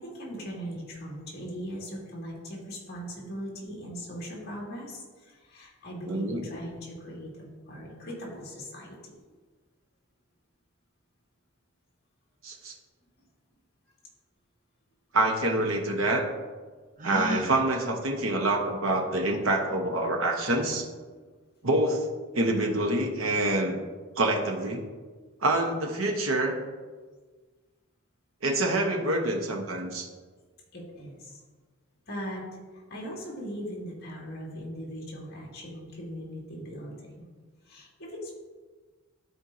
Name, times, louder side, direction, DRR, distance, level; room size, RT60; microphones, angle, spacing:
voice 1, 0.0-9.1 30.7-31.4 32.1-32.4 32.7-37.2 37.6-38.3, equal, 50° left, -3 dB, 2.1 m, -39 dB
voice 2, 6.1-6.4 12.4-12.7 15.1-16.2 17.0-20.9 21.6-22.0 22.3-23.8 24.2-24.8 25.4-26.6 28.4-30.1, right 2 dB, 80° right, 2 dB, 1.1 m, -26 dB
Gasp, 17.0-17.5, equal, 40° right, 0.6 m, -32 dB
13.0 x 4.5 x 2.7 m, 1.4 s
head